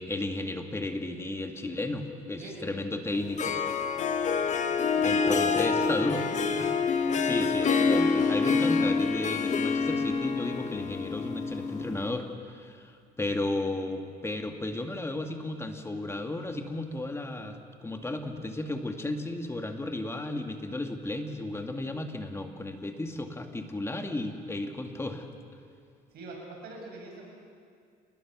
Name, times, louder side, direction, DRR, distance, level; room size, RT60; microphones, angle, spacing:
voice 1, 0.0-3.6 5.0-6.2 6.6-6.7 7.2-25.3, left 2 dB, 15° left, 5 dB, 2.0 m, -34 dB
Harp, 3.1-12.1, left 5 dB, 45° left, 1.6 m, -27 dB
voice 2, 4.9-6.6 26.1-27.3, right 3 dB, 70° right, -1 dB, 6.4 m, -42 dB
28.5 x 20.0 x 6.2 m, 2.2 s
cardioid pair, 110°, 17 cm